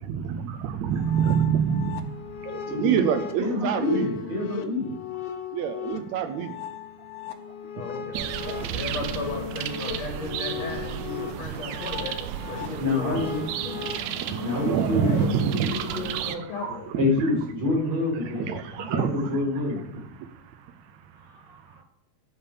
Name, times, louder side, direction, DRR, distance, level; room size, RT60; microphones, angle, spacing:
voice 1, 0.0-4.1 5.5-6.6 8.0-8.1 13.7-17.3 18.2-19.6 19.9-21.8, right 8 dB, 75° right, 9 dB, 1.8 m, -28 dB
sound 1, 0.9-15.3, left 8 dB, 80° left, 1.2 m, -37 dB
voice 2, 2.7-3.0 3.4-4.9 12.8-13.4 14.4-15.1 16.9-18.5 18.7-19.8 21.3-21.6, left 2 dB, 40° right, -3 dB, 5.1 m, -27 dB
voice 3, 7.7-12.1 12.5-13.3 13.6-13.8 14.9-16.9, left 3 dB, 55° left, 1 dB, 3.4 m, -35 dB
sound 2, 8.1-16.4, right 10 dB, 90° right, 2.3 m, -33 dB
11.0 x 6.6 x 6.8 m, 0.81 s
omnidirectional pair, 3.7 m